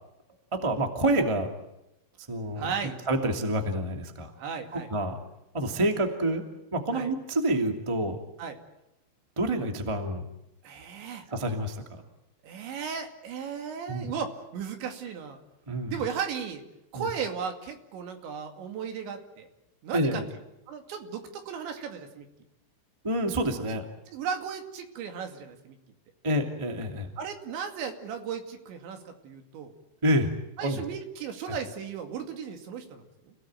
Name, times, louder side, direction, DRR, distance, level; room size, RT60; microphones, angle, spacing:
voice 1, 0.5-1.5 2.3-2.7 3.1-4.3 4.7-5.1 5.5-6.4 6.7-8.2 9.3-10.2 11.3-11.8 13.9-14.1 15.7-15.9 16.9-17.1 19.9-20.2 23.0-23.8 26.2-27.1 30.0-30.3 30.6-30.8, right 1 dB, 30° right, 4 dB, 0.5 m, -27 dB
voice 2, 2.6-3.0 4.4-4.9 6.9-7.1 8.4-8.6 10.6-11.3 12.4-15.4 15.9-16.6 16.9-19.5 19.8-20.2 20.7-22.3 23.7-23.8 24.1-25.8 27.2-29.7 30.6-33.3, right 7 dB, 65° right, 5 dB, 4.4 m, -36 dB
29.5 x 17.5 x 9.0 m, 0.90 s
omnidirectional pair, 5.9 m